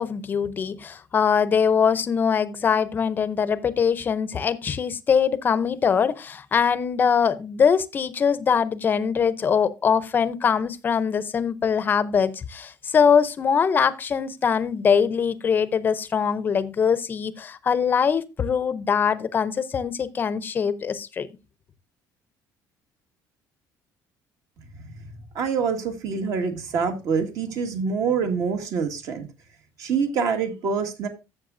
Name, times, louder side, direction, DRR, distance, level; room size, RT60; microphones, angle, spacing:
voice 1, 0.0-21.3, left 6 dB, 25° left, 0.6 m, -22 dB
voice 2, 25.3-29.3 29.8-31.1, right 5 dB, 55° right, 1.7 m, -25 dB
12.5 x 7.2 x 2.5 m
cardioid pair, 165°, 7 cm